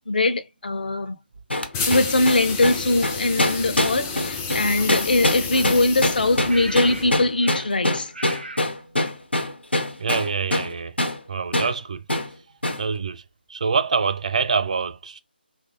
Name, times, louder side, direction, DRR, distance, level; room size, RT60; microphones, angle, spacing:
voice 1, 0.1-1.2 1.9-8.1, left 2 dB, 55° left, 0.6 m, -21 dB
sound 1, 1.5-10.7 11.0-11.2 11.5-11.7 12.1-12.3 12.6-12.8, left 1 dB, 85° left, 1.0 m, -24 dB
Bus-doors-sound-effect, 1.7-7.4, left 5 dB, 20° left, 0.5 m, -31 dB
sound 2, 6.5-7.1 7.4-7.7 8.1-8.7, right 2 dB, 70° right, 0.8 m, -38 dB
voice 2, 10.0-11.0 11.3-12.1 12.8-13.2 13.5-15.2, right 5 dB, 40° right, 0.4 m, -25 dB
3.0 x 2.5 x 2.8 m
figure-of-eight pair, 150°, 6 cm